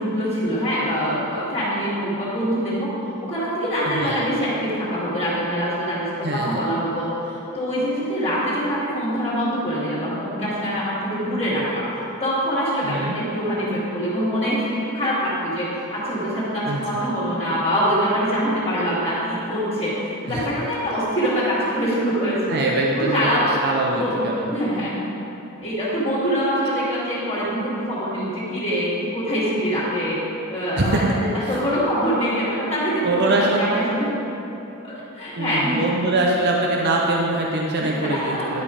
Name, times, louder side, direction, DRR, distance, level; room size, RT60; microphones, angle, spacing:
voice 1, 0.0-2.9 3.2-11.8 12.2-22.6 22.9-23.5 23.8-24.9 25.6-30.2 30.5-34.2 34.8-35.8 37.8-38.6, equal, 30° left, -9 dB, 2.1 m, -24 dB
voice 2, 3.9-4.2 6.2-6.6 12.8-13.2 16.6-17.0 20.3-20.5 22.5-24.5 30.7-31.1 31.4-31.6 33.0-33.6 35.3-38.6, right 2 dB, 50° right, -1 dB, 0.7 m, -23 dB
10.5 x 5.3 x 5.0 m, 3.0 s
head